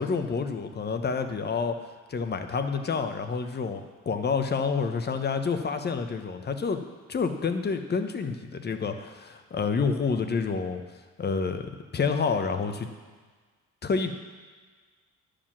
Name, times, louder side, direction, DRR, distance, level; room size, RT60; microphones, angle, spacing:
voice 1, 0.0-1.8 2.1-6.8 7.1-10.8 11.2-12.9 13.8-14.1, left 5 dB, 35° left, 7 dB, 0.9 m, -28 dB
11.0 x 5.0 x 7.3 m, 1.5 s
cardioid pair, 100°, 30 cm